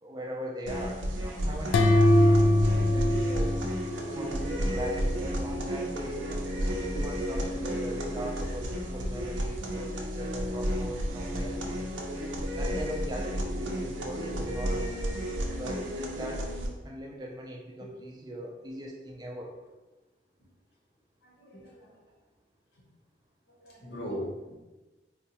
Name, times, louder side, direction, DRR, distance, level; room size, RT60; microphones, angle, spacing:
voice 1, 0.0-3.5 4.1-6.3 6.8-11.9 12.6-15.0 15.5-16.5 16.8-19.5, right 1 dB, 20° right, 0 dB, 0.3 m, -40 dB
sound 1, 0.7-16.7, equal, 90° right, 0.5 m, -32 dB
sound 2, 1.7-4.5, left 1 dB, 85° left, 0.3 m, -22 dB
voice 2, 21.4-21.9 23.6-24.5, equal, 65° left, -2 dB, 0.9 m, -39 dB
3.9 x 2.3 x 2.8 m, 1.1 s
head